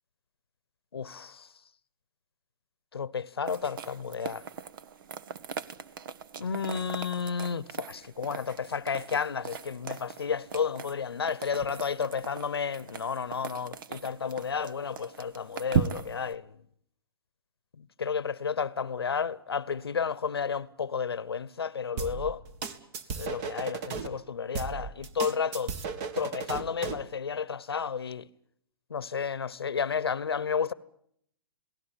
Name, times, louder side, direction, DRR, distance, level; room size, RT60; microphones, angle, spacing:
voice 1, 0.9-1.5 2.9-4.4 6.4-16.5 17.8-22.4 23.2-25.7 26.1-28.3 28.9-30.7, left 6 dB, 85° left, 1.0 m, -32 dB
sound 1, 3.5-16.3, right 7 dB, 60° right, 1.2 m, -38 dB
sound 2, 22.0-24.1 24.6-27.1, right 5 dB, 40° right, 2.1 m, -35 dB
28.0 x 18.0 x 9.1 m
hypercardioid pair, 125°, 13 cm